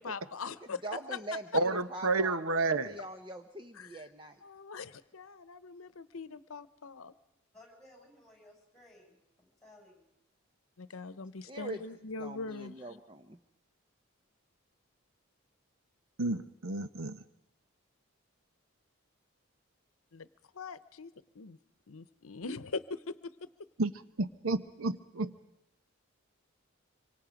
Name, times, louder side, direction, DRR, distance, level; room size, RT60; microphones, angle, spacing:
voice 1, 0.0-0.8 1.1-1.2 3.7-4.0 4.4-7.1 10.8-12.9 20.1-20.3 20.5-21.6 21.9-23.3, left 4 dB, 80° left, 14 dB, 0.8 m, -42 dB
voice 2, 0.8-2.4 2.9-4.4 11.5-11.8 12.2-13.4, right 2 dB, 25° right, 7 dB, 0.8 m, -42 dB
voice 3, 1.5-3.0 16.2-17.2 23.8-23.9 24.2-25.3, right 3 dB, 80° right, 12 dB, 1.0 m, -30 dB
voice 4, 7.5-10.0, left 1 dB, 5° left, 0 dB, 6.4 m, -58 dB
25.5 x 24.5 x 5.1 m, 0.85 s
head